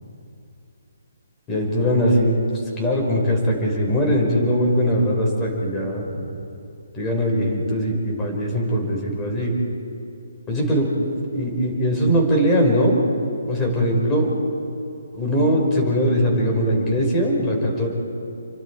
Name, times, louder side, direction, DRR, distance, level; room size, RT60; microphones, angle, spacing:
voice 1, 1.5-2.4 2.8-6.3 6.9-9.5 10.5-10.9 11.3-13.0 13.5-14.3 15.1-17.9, equal, 15° left, -1 dB, 5.4 m, -21 dB
29.5 x 24.5 x 4.8 m, 2.7 s
figure-of-eight pair, 140°, 0 cm